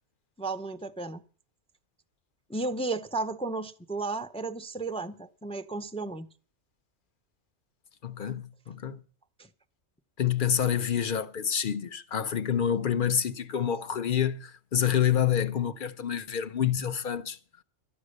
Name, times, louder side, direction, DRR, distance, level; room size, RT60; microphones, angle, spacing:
voice 1, 0.4-1.2 2.5-6.3, right 3 dB, 5° left, 0.4 m, -33 dB
voice 2, 8.0-9.0 10.2-17.4, left 9 dB, 50° left, 0.9 m, -28 dB
13.0 x 9.6 x 6.5 m
omnidirectional pair, 1.3 m